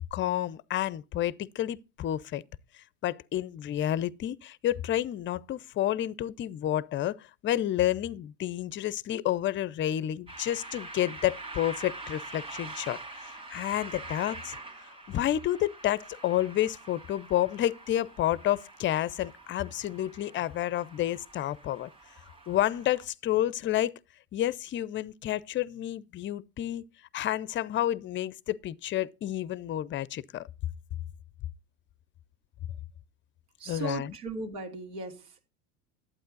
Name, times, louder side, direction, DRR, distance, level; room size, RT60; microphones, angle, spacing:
voice 1, 0.1-2.4 2.7-14.6 15.1-21.9 22.5-23.9 24.3-26.8 27.1-30.5 33.7-34.1, left 13 dB, 25° left, 0.5 m, -30 dB
sound 1, 10.3-23.1, right 2 dB, 10° right, 2.0 m, -45 dB
voice 2, 33.6-35.5, right 3 dB, 75° right, 3.1 m, -37 dB
11.5 x 8.9 x 3.9 m
hypercardioid pair, 90°, 47 cm